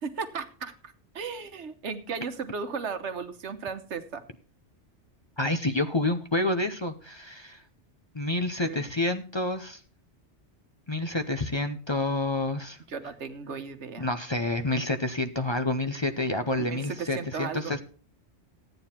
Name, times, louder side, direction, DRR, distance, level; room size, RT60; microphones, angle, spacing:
voice 1, 0.0-4.2 8.6-8.8 12.9-14.1 16.5-17.7, right 5 dB, 80° right, 8 dB, 1.4 m, -36 dB
voice 2, 5.4-7.6 8.1-9.8 10.9-12.8 14.0-17.8, left 2 dB, 30° left, 7 dB, 0.7 m, -28 dB
13.5 x 9.2 x 4.3 m, 0.40 s
omnidirectional pair, 1.1 m